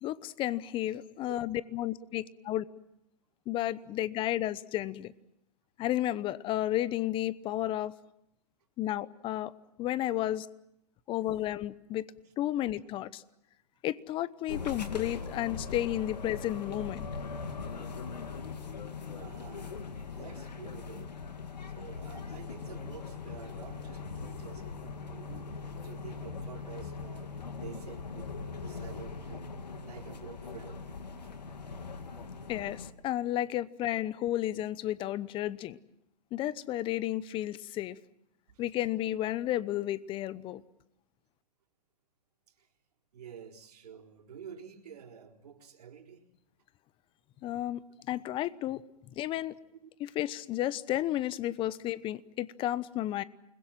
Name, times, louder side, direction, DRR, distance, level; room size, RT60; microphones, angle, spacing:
voice 1, 0.0-2.6 3.5-5.1 5.8-7.9 8.8-9.5 9.8-10.5 11.1-12.1 12.4-13.2 13.8-17.1 32.5-35.8 36.3-38.0 38.6-40.6 47.4-48.8 49.1-49.5 50.0-53.2, left 13 dB, 25° left, 18 dB, 0.9 m, -32 dB
sound 1, 14.5-32.9, left 4 dB, 90° left, 2.3 m, -41 dB
voice 2, 19.2-21.2 21.7-25.5 25.8-29.5 29.8-30.9 31.4-31.9 38.5-38.6 42.5-42.7 43.1-46.3 49.8-49.9, right 8 dB, 70° right, 3 dB, 4.0 m, -50 dB
29.0 x 21.0 x 7.5 m, 0.80 s
hypercardioid pair, 130°, 21 cm